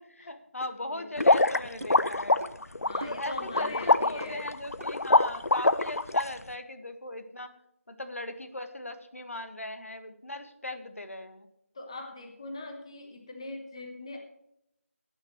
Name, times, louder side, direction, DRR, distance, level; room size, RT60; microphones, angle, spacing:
voice 1, 0.0-2.4 3.1-7.5 7.9-11.5, left 1 dB, 65° left, 9 dB, 1.5 m, -39 dB
sound 1, 0.6-0.7 1.2-1.4 1.8-2.1 2.4-2.5 3.0-3.3 3.6-3.7 4.2-4.4 4.8-4.9, right 2 dB, 65° right, 1.3 m, -43 dB
sound 2, 1.2-6.2, left 2 dB, 85° left, 0.7 m, -24 dB
voice 2, 2.8-4.6 11.7-14.2, left 2 dB, 20° left, 3 dB, 1.1 m, -41 dB
16.5 x 9.5 x 3.1 m, 0.79 s
figure-of-eight pair, 175°, 8 cm